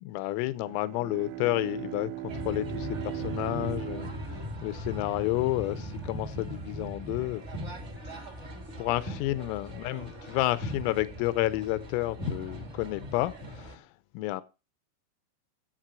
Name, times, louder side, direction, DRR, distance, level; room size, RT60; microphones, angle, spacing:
voice 1, 0.1-7.4 8.8-13.9 14.2-14.4, left 17 dB, 90° left, 3.4 m, -31 dB
Bowed string instrument, 0.5-5.3, right 19 dB, 80° right, 2.7 m, -39 dB
sound 1, 2.3-13.7, left 1 dB, 60° right, 0.7 m, -39 dB
11.0 x 8.3 x 6.2 m
omnidirectional pair, 5.8 m